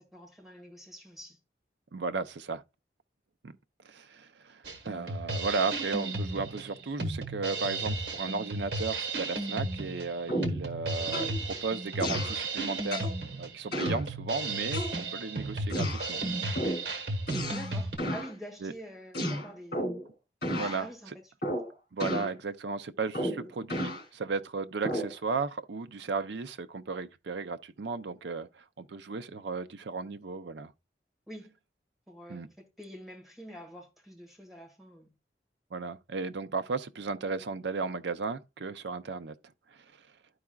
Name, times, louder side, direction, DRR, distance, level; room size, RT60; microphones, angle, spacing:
voice 1, 0.1-1.4 17.5-19.9 20.5-21.1 21.4-21.6 31.3-31.5 32.1-35.1, right 1 dB, ahead, 2.0 m, -46 dB
voice 2, 1.9-2.6 3.4-3.6 3.8-16.2 18.6-18.7 20.6-20.9 21.9-30.7 32.3-32.5 35.7-39.3 39.7-39.8, right 4 dB, 90° right, 0.5 m, -35 dB
Drum kit, 4.6-18.0, right 2 dB, 70° right, 1.3 m, -34 dB
sound 1, 10.3-10.6 11.1-11.4 12.0-12.4 12.9-13.2 13.7-14.0 14.7-15.3 15.7-16.1 16.5-16.9 17.3-17.7 18.0-18.3 19.1-20.1 20.4-20.8 21.4-21.7 22.0-22.3 23.1-24.0 24.8-25.1, equal, 60° left, 2.7 m, -32 dB
12.5 x 4.8 x 2.3 m
head